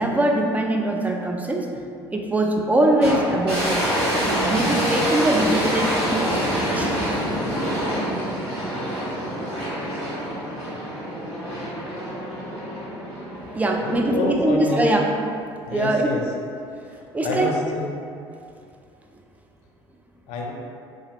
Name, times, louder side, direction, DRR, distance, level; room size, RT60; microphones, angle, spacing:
voice 1, 0.0-1.8 2.1-3.9 4.5-6.2 6.7-7.0 13.5-15.1 15.7-16.1 17.1-17.5, right 1 dB, 10° right, 1 dB, 0.4 m, -22 dB
sound 1, 3.0-14.2, equal, 85° right, 1.0 m, -26 dB
voice 2, 13.8-14.9 15.6-16.2 16.9-18.0 20.3-20.5, left 2 dB, 60° left, 0 dB, 0.5 m, -28 dB
3.2 x 2.0 x 3.6 m, 2.5 s
figure-of-eight pair, 60°, 13 cm